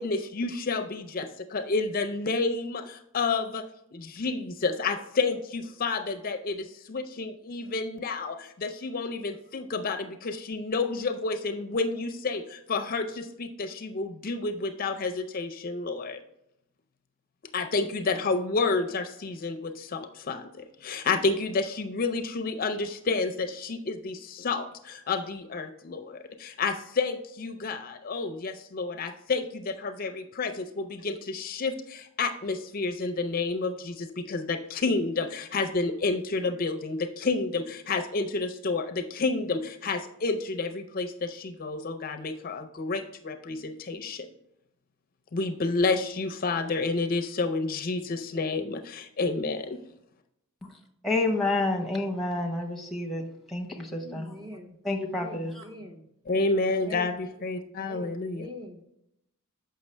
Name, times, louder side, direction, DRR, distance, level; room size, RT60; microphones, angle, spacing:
voice 1, 0.0-3.6 3.9-16.2 17.5-44.3 45.3-49.8 56.3-58.5, left 3 dB, 40° left, 7 dB, 0.5 m, -30 dB
voice 2, 51.0-54.3 54.8-55.7, left 2 dB, ahead, 0 dB, 0.9 m, -29 dB
voice 3, 53.9-54.8 55.1-56.1 56.8-57.3 57.6-58.8, left 1 dB, 20° right, 3 dB, 0.6 m, -44 dB
7.1 x 5.7 x 3.2 m, 0.79 s
head